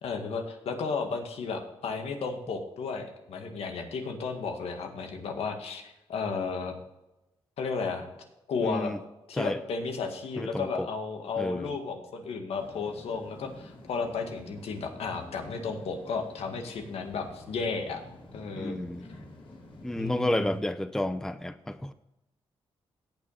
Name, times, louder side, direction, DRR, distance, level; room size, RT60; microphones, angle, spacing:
voice 1, 0.0-6.8 7.6-8.1 8.5-8.9 9.3-18.0 18.3-18.8 20.0-20.5, left 4 dB, 85° left, 4 dB, 1.9 m, -33 dB
voice 2, 8.6-9.0 9.4-9.6 10.4-10.9 11.4-11.8 18.6-19.1 19.8-21.9, left 1 dB, 5° left, 12 dB, 0.6 m, -31 dB
sound 1, 12.5-20.6, left 1 dB, 55° left, 4.2 m, -49 dB
17.5 x 6.1 x 4.2 m, 0.94 s
cardioid pair, 90°, 10 cm